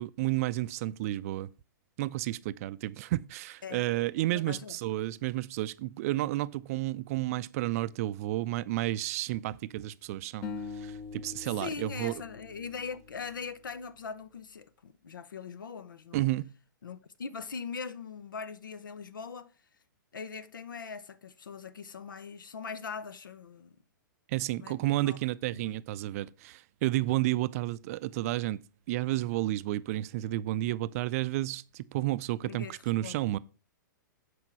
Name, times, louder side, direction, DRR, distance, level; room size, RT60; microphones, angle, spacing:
voice 1, 0.0-1.5 2.0-10.5 10.7-12.1 16.1-16.4 24.3-28.6 28.9-33.4, right 16 dB, 45° right, 0.4 m, -31 dB
voice 2, 4.3-4.8 11.6-16.3 16.8-19.5 20.1-23.8 24.6-25.2 25.5-25.7 26.2-26.3 32.4-33.2, left 5 dB, 80° left, 0.7 m, -41 dB
sound 1, 10.4-13.7, left 5 dB, 35° left, 1.0 m, -43 dB
8.1 x 5.0 x 4.4 m
hypercardioid pair, 115°, 11 cm